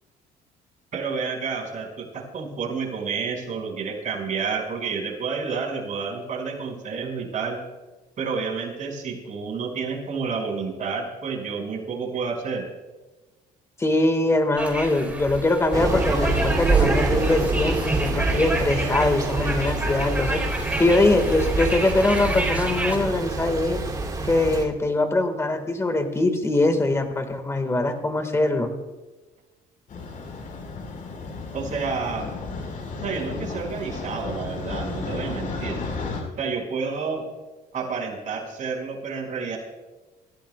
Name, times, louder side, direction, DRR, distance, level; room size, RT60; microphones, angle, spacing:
voice 1, 0.9-7.6 8.2-12.6 31.5-32.3 32.9-35.8 36.4-37.3 37.7-39.6, right 5 dB, 50° right, -2 dB, 5.6 m, -30 dB
voice 2, 13.8-20.4 20.8-23.8 24.3-28.7, left 2 dB, 15° left, 7 dB, 1.8 m, -22 dB
sound 1, 14.6-23.0, right 2 dB, 10° right, 3.6 m, -30 dB
Thunder / Rain, 15.7-24.6, right 3 dB, 25° right, 2.7 m, -26 dB
sound 2, 29.9-36.2, left 3 dB, 50° left, 4.7 m, -33 dB
28.0 x 16.0 x 2.3 m, 1.2 s
cardioid pair, 110°, 17 cm